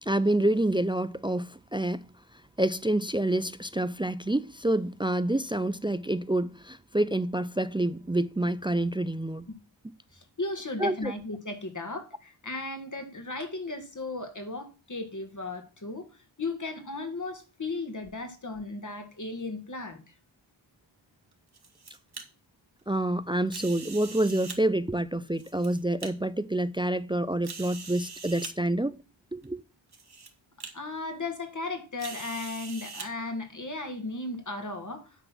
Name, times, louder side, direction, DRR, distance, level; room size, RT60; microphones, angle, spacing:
voice 1, 0.0-2.1 2.6-9.4 10.8-11.1 22.9-29.0 29.3-29.6, right 1 dB, 10° right, 0.3 m, -27 dB
voice 2, 10.1-20.1 30.7-35.2, left 2 dB, 40° left, 1.9 m, -36 dB
sound 1, 21.3-22.2 23.5-24.6 25.3-26.1 26.7-26.8 27.4-28.5 29.4-29.5 29.9-30.3 30.6-30.7 32.0-33.1, right 4 dB, 50° right, 1.7 m, -42 dB
9.9 x 4.0 x 6.0 m
cardioid pair, 60°, 48 cm